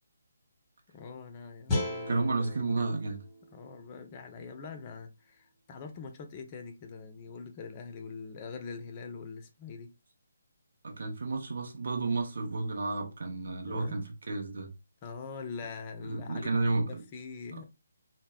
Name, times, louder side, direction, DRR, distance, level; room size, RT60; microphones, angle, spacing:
voice 1, 0.9-2.9 3.5-9.9 13.7-14.0 15.0-17.6, left 5 dB, 30° left, 0.5 m, -43 dB
sound 1, 1.7-4.8, left 2 dB, 10° left, 0.9 m, -37 dB
voice 2, 2.1-3.2 10.8-14.7 16.0-17.0, right 3 dB, 55° right, 0.7 m, -31 dB
2.0 x 2.0 x 3.4 m
figure-of-eight pair, 145°, 0 cm